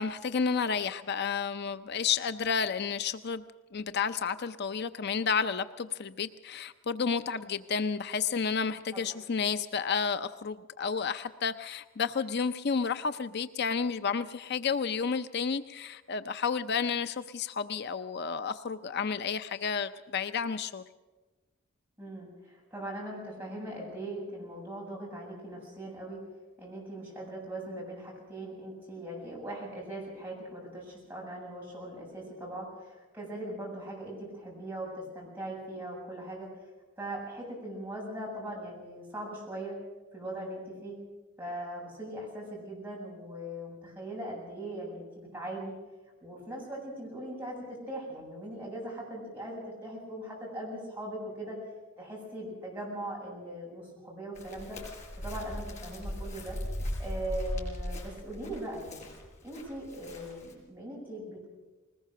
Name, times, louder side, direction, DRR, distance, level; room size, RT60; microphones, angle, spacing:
voice 1, 0.0-3.4 3.7-20.8, left 6 dB, 55° left, 11 dB, 0.6 m, -31 dB
voice 2, 22.0-26.2 26.6-36.5 37.0-39.7 40.1-41.0 41.4-45.8 46.2-51.6 52.0-54.8 55.2-56.6 57.0-59.0 59.4-61.5, right 1 dB, 10° right, -4 dB, 7.9 m, -40 dB
Chirp tweet, 54.3-60.5, equal, 35° left, 5.6 m, -38 dB
21.0 x 19.5 x 6.7 m, 1.2 s
head